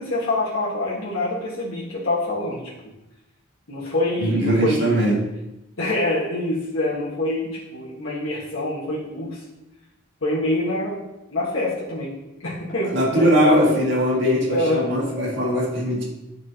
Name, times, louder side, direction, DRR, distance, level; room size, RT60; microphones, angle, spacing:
voice 1, 0.0-2.7 3.7-4.9 5.8-9.4 10.2-11.0 11.3-12.1 12.4-13.7 14.5-14.9, left 1 dB, 80° left, -8 dB, 1.5 m, -25 dB
voice 2, 4.2-5.2 12.8-16.0, equal, 60° right, -3 dB, 1.9 m, -20 dB
9.9 x 4.7 x 2.9 m, 0.94 s
head